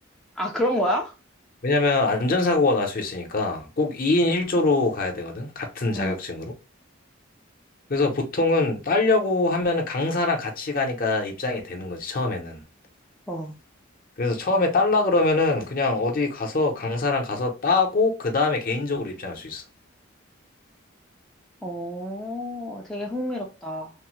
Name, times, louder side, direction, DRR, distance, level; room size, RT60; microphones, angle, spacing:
voice 1, 0.4-1.1 5.9-6.2 13.3-13.5 21.6-23.9, equal, 5° left, 0.4 m, -28 dB
voice 2, 1.6-6.5 7.9-12.6 14.2-19.6, left 3 dB, 45° left, 0.7 m, -23 dB
3.3 x 2.1 x 3.0 m
head